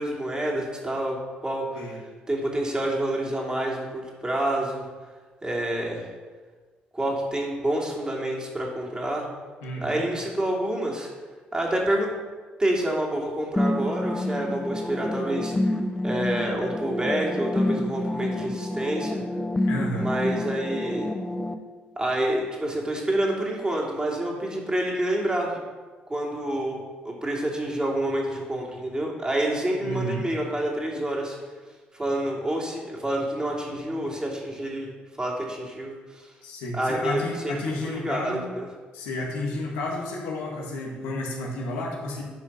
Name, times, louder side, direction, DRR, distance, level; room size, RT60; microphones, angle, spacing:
voice 1, 0.0-1.9 2.3-4.9 5.4-6.1 6.9-9.3 9.8-11.1 11.5-12.1 12.6-15.5 16.0-19.2 19.9-21.1 22.0-25.6 26.1-26.8 27.0-31.4 31.9-36.3 36.7-37.5 37.8-38.7, right 1 dB, 20° right, -2 dB, 2.9 m, -28 dB
voice 2, 9.6-10.0 19.7-20.1 29.8-30.2 36.4-38.5 38.9-42.2, left 1 dB, 85° left, -2 dB, 1.7 m, -31 dB
sound 1, 13.6-21.5, left 1 dB, 15° left, 0.7 m, -28 dB
10.5 x 5.0 x 5.6 m, 1.4 s
hypercardioid pair, 55°, 4 cm